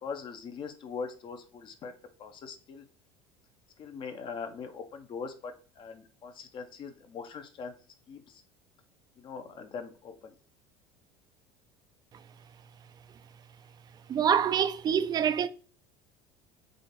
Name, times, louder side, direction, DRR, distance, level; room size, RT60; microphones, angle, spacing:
voice 1, 0.0-1.9 2.2-2.8 3.8-7.7 8.1-8.4 9.2-10.3, left 5 dB, 45° left, 0.7 m, -41 dB
voice 2, 14.1-15.5, right 8 dB, 35° right, 0.4 m, -25 dB
3.8 x 2.5 x 4.1 m
supercardioid pair, 100°, 12 cm